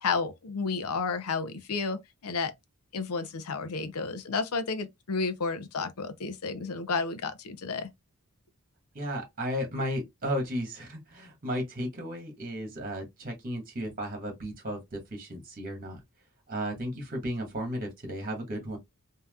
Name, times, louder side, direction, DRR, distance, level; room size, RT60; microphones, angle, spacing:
voice 1, 0.0-2.5 2.9-7.9, left 4 dB, 80° left, 0.6 m, -31 dB
voice 2, 8.9-16.0 16.5-18.8, equal, 40° right, 1.5 m, -34 dB
3.5 x 2.8 x 2.2 m
head